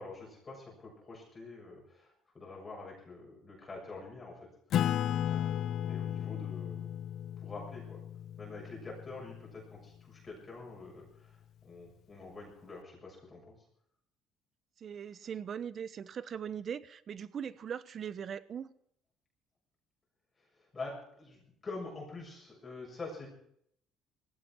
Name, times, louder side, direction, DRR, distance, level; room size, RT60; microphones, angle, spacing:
voice 1, 0.0-4.5 5.3-7.0 7.4-8.0 8.4-13.6 20.4-23.3, left 3 dB, 25° left, 6.8 m, -46 dB
Acoustic guitar / Strum, 4.7-9.7, left 10 dB, 60° left, 0.5 m, -34 dB
voice 2, 14.8-18.7, right 8 dB, 45° right, 1.0 m, -40 dB
19.0 x 16.0 x 4.7 m
cardioid pair, 110°, 0 cm